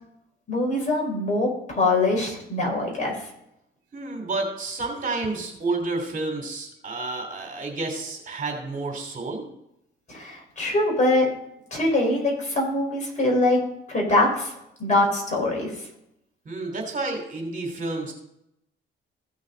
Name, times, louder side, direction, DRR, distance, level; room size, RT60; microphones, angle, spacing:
voice 1, 0.5-3.1 10.1-11.3 11.7-13.6 13.9-14.5 14.8-15.7, left 2 dB, 40° left, -1 dB, 4.9 m, -23 dB
voice 2, 3.9-9.4 16.4-18.1, right 3 dB, 40° right, 2 dB, 3.0 m, -30 dB
15.5 x 6.4 x 4.0 m, 0.80 s
cardioid pair, 90°, 20 cm